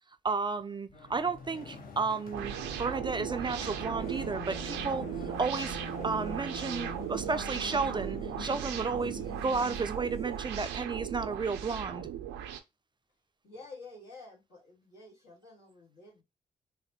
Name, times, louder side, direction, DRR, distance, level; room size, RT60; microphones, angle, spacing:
voice 1, 0.2-5.8 6.0-12.1, right 4 dB, 25° right, 0.4 m, -33 dB
sound 1, 0.9-10.1, left 5 dB, 50° left, 0.8 m, -45 dB
sound 2, 2.3-12.6, right 10 dB, 80° right, 0.5 m, -37 dB
sound 3, 4.0-10.8, right 1 dB, 30° left, 2.2 m, -59 dB
voice 2, 13.4-16.2, left 3 dB, 75° left, 1.8 m, -50 dB
4.0 x 2.1 x 2.9 m
hypercardioid pair, 40°, 18 cm